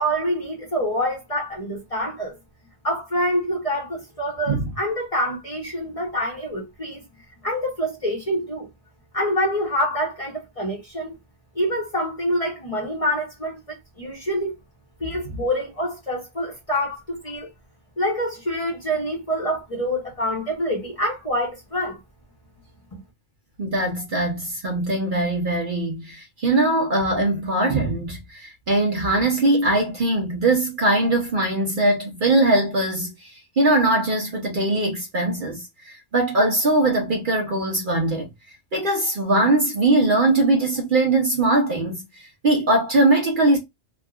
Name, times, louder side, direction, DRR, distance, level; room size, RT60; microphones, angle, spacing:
voice 1, 0.0-2.4 2.8-7.0 7.4-8.7 9.1-11.2 11.5-14.5 15.0-17.5 18.0-22.0 22.9-23.0, equal, 30° left, 0.9 m, -26 dB
voice 2, 23.6-38.3 38.7-43.6, right 2 dB, 45° right, 0.8 m, -21 dB
3.5 x 2.3 x 2.3 m
omnidirectional pair, 1.3 m